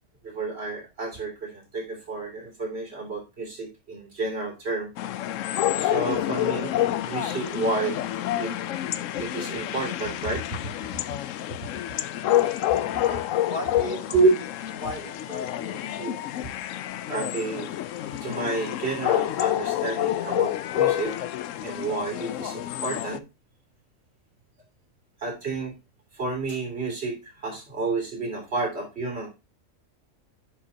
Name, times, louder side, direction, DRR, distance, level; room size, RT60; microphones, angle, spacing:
voice 1, 0.2-4.9 5.8-6.7 7.0-8.0 8.4-8.5 9.2-10.7 14.1-14.3 16.0-16.1 17.1-17.7 18.2-21.2 21.6-23.2 25.2-25.7 26.1-29.3, right 3 dB, 50° right, 0 dB, 3.2 m, -29 dB
sound 1, 5.0-23.2, left 13 dB, 75° left, 0.9 m, -28 dB
voice 2, 13.5-14.2 14.8-16.0, left 1 dB, 35° left, 4 dB, 1.8 m, -37 dB
10.5 x 5.1 x 2.8 m, 0.26 s
omnidirectional pair, 1.4 m